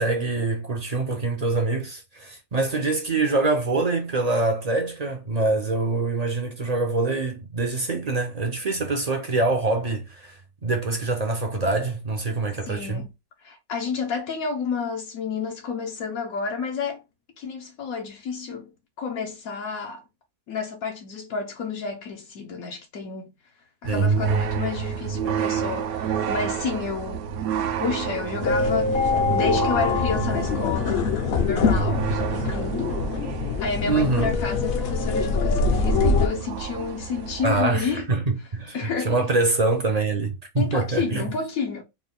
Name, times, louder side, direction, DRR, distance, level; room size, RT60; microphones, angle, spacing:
voice 1, 0.0-13.0 23.8-24.2 33.9-34.4 37.4-41.3, right 3 dB, 50° right, 0.5 m, -25 dB
voice 2, 12.6-13.1 13.4-17.0 17.4-18.7 19.0-20.0 20.5-23.3 23.8-27.2 27.8-31.1 31.4-33.0 33.6-38.1 38.7-39.2 40.6-41.8, left 5 dB, 80° left, 1.2 m, -30 dB
sound 1, 23.8-37.6, right 7 dB, 85° right, 1.0 m, -29 dB
sound 2, 28.4-36.3, left 4 dB, 60° left, 0.7 m, -24 dB
4.1 x 2.2 x 3.7 m
omnidirectional pair, 1.5 m